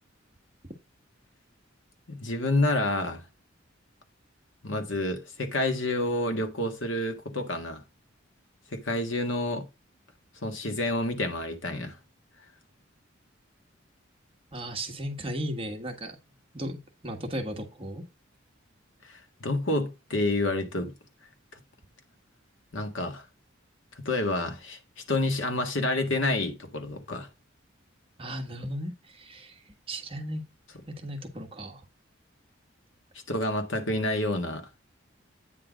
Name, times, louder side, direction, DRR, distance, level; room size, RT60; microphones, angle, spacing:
voice 1, 2.1-3.2 4.6-7.8 8.7-9.6 10.4-12.0 19.0-20.9 22.7-23.2 23.9-24.8 25.1-27.3 33.3-34.7, left 2 dB, 70° left, 1.6 m, -28 dB
voice 2, 14.5-16.1 16.5-16.8 17.0-18.0 28.2-29.6 29.9-30.4 30.9-31.8, equal, 30° right, 1.5 m, -35 dB
9.1 x 3.8 x 5.0 m
head